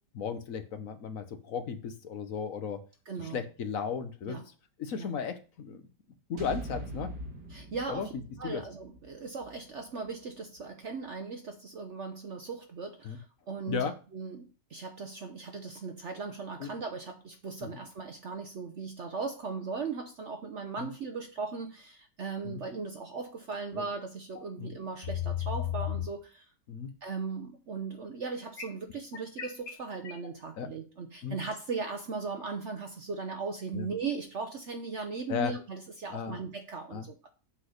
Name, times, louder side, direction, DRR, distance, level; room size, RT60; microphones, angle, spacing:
voice 1, 0.1-2.8 3.3-4.4 4.8-5.8 6.3-7.1 7.9-8.1 8.4-8.6 13.0-13.2 13.7-13.9 16.6-16.7 20.8-20.9 22.4-22.6 23.7-23.8 24.6-24.7 26.7-26.9 30.6-30.7 31.2-31.4 33.7-33.9 35.3-35.5 36.1-36.4 36.9-37.0, left 6 dB, 60° left, 9 dB, 1.2 m, -35 dB
voice 2, 3.1-3.4 4.3-4.4 5.0-5.1 7.5-8.1 8.4-13.9 14.1-26.5 27.0-37.3, right 4 dB, 55° right, 5 dB, 1.0 m, -38 dB
sound 1, 6.4-10.6, right 1 dB, 85° right, 2.3 m, -43 dB
sound 2, 24.4-24.5 25.0-26.1 28.6-30.3, left 11 dB, 90° left, 1.8 m, -34 dB
7.8 x 4.1 x 6.5 m, 0.36 s
omnidirectional pair, 1.7 m